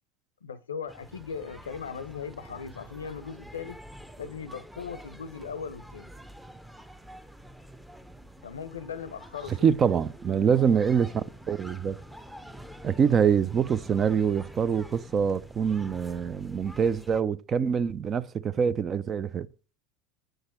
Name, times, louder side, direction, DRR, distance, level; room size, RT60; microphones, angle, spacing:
voice 1, 0.4-3.8 4.2-6.1 8.4-9.7, left 6 dB, 90° left, 0.6 m, -38 dB
sound 1, 0.9-17.2, equal, 5° right, 0.8 m, -47 dB
voice 2, 9.6-12.0 12.8-19.5, right 7 dB, 35° right, 0.6 m, -25 dB
7.9 x 6.5 x 4.3 m
hypercardioid pair, 90°, 0 cm